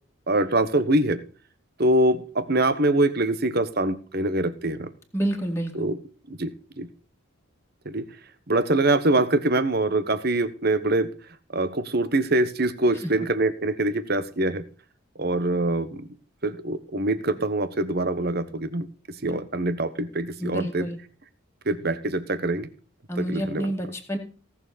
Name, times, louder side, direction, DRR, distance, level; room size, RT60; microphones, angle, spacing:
voice 1, 0.3-1.2 1.8-4.9 5.7-6.0 6.3-6.9 7.8-8.1 8.5-11.1 11.5-14.6 15.2-16.1 16.4-20.9 21.7-22.7 23.2-23.7, right 2 dB, 45° right, 12 dB, 1.3 m, -24 dB
voice 2, 5.1-5.7 19.3-19.4 20.4-21.0 23.1-24.2, right 1 dB, 10° left, 1 dB, 2.2 m, -28 dB
18.0 x 7.0 x 4.2 m, 0.40 s
head